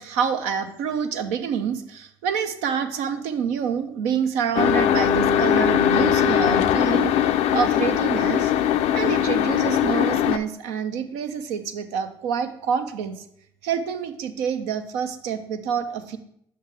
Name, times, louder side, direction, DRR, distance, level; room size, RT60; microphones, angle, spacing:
voice 1, 0.0-8.5 8.9-13.2 13.6-16.2, right 7 dB, 85° right, 8 dB, 0.6 m, -27 dB
sound 1, 4.6-10.4, left 10 dB, 75° left, 0.4 m, -20 dB
6.6 x 5.6 x 3.3 m, 0.69 s
hypercardioid pair, 60°, 11 cm